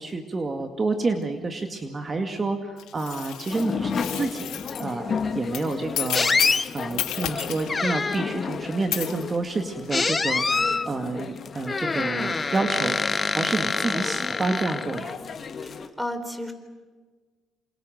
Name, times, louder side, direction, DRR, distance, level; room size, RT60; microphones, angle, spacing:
voice 1, 0.0-4.5 4.8-6.3 6.7-15.1, right 3 dB, 30° right, 6 dB, 2.2 m, -29 dB
sound 1, 2.8-4.9 5.5-7.8 8.9-9.2, left 12 dB, 85° left, 3.8 m, -32 dB
sound 2, 3.5-15.9, left 5 dB, 45° left, 2.0 m, -34 dB
sound 3, 6.1-6.7 7.7-8.4 9.9-10.9 11.7-15.1, left 4 dB, 25° left, 0.7 m, -25 dB
voice 2, 15.6-16.5, left 1 dB, ahead, 7 dB, 3.9 m, -33 dB
28.0 x 27.5 x 6.7 m, 1.4 s
cardioid pair, 100°, 0 cm